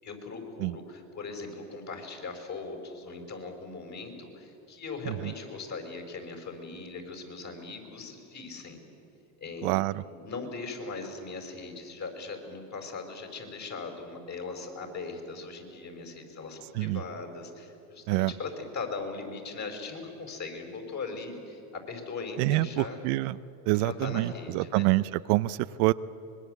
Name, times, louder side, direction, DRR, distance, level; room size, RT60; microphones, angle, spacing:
voice 1, 0.0-8.8 9.4-9.8 10.2-23.0 23.8-24.9, left 4 dB, 40° left, 4 dB, 5.5 m, -39 dB
voice 2, 9.6-9.9 16.8-17.0 18.1-18.3 22.4-23.4 23.7-25.9, right 19 dB, 70° right, 15 dB, 0.7 m, -26 dB
25.0 x 21.0 x 8.1 m, 2.8 s
supercardioid pair, 95°, 45 cm